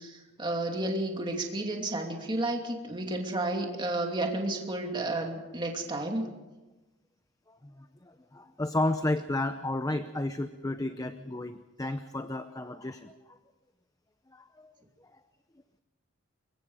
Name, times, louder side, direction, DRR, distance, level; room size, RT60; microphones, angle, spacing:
voice 1, 0.0-6.3, right 2 dB, 25° right, 1 dB, 2.8 m, -32 dB
voice 2, 7.5-13.4 14.3-14.7, left 2 dB, 15° left, 9 dB, 0.7 m, -33 dB
25.5 x 22.5 x 5.0 m, 1.1 s
head